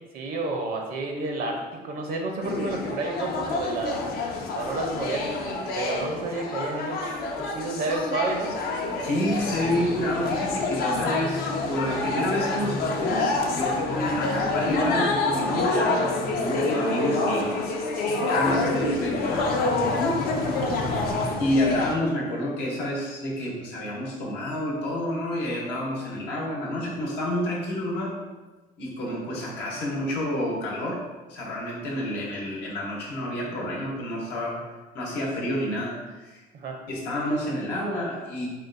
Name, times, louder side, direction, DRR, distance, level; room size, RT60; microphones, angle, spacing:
voice 1, 0.1-4.0 4.5-5.3 5.8-7.0 7.4-8.5 18.1-18.3 36.5-36.8, right 3 dB, 60° right, 1 dB, 0.5 m, -30 dB
sound 1, 2.4-21.9, left 3 dB, 65° left, 0.5 m, -27 dB
voice 2, 9.0-17.7 18.3-19.5 20.7-20.9 21.4-28.2 28.8-31.0 31.3-34.6 34.9-36.4 36.9-38.5, equal, 85° left, -3 dB, 0.9 m, -29 dB
3.8 x 2.2 x 2.5 m, 1.2 s
cardioid pair, 110°, 17 cm